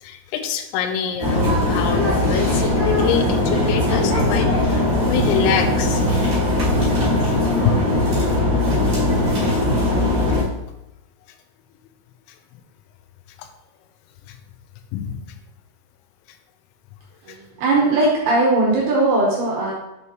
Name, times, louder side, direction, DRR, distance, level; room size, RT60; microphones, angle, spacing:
voice 1, 0.0-6.0 6.4-6.5 9.1-9.4 13.4-13.5 14.3-14.4 14.9-15.2 17.3-17.4, left 8 dB, 85° left, 7 dB, 3.4 m, -26 dB
sound 1, 1.2-10.4, left 1 dB, 30° right, 1.7 m, -19 dB
voice 2, 17.2-19.7, right 2 dB, 70° right, -4 dB, 2.5 m, -19 dB
8.0 x 6.3 x 3.0 m, 0.94 s
omnidirectional pair, 5.9 m